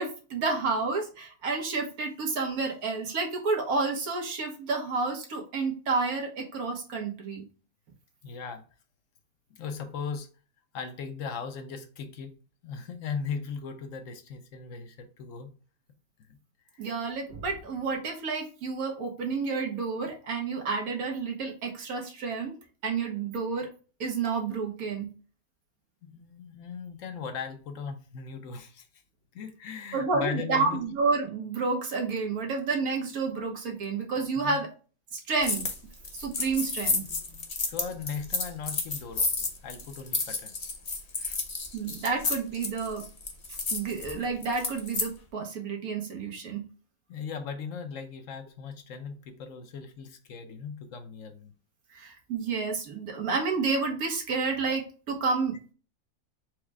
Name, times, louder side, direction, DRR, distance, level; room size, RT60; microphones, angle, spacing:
voice 1, 0.0-7.5 16.8-22.6 22.8-23.7 24.0-25.1 29.9-34.7 35.1-35.7 36.1-37.1 41.7-43.0 43.7-46.6 51.9-55.7, right 4 dB, 90° right, 1 dB, 1.5 m, -30 dB
voice 2, 8.2-8.6 9.5-10.3 10.7-15.5 16.7-16.9 26.0-28.9 29.3-30.8 34.4-34.6 37.0-40.8 41.1-41.4 47.1-51.5, left 6 dB, 70° left, 7 dB, 1.0 m, -38 dB
sound 1, 35.4-35.8 36.0-45.1, left 3 dB, 40° left, 0.6 m, -31 dB
4.7 x 2.1 x 4.6 m, 0.37 s
omnidirectional pair, 1.5 m